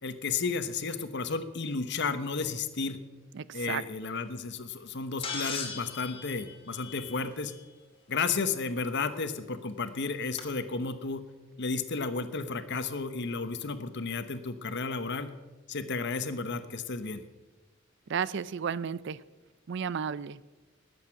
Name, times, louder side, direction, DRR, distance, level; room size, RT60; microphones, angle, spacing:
voice 1, 0.0-3.0 3.5-7.5 8.1-11.2 11.6-15.3 15.7-17.2, left 4 dB, 60° left, 10 dB, 1.0 m, -33 dB
voice 2, 3.3-3.8 18.1-19.2 19.7-20.4, right 7 dB, 60° right, 18 dB, 0.5 m, -33 dB
sound 1, 5.2-7.5 9.1-9.2 10.4-10.5, left 5 dB, 25° left, 2.3 m, -38 dB
20.0 x 8.2 x 5.9 m, 1.2 s
head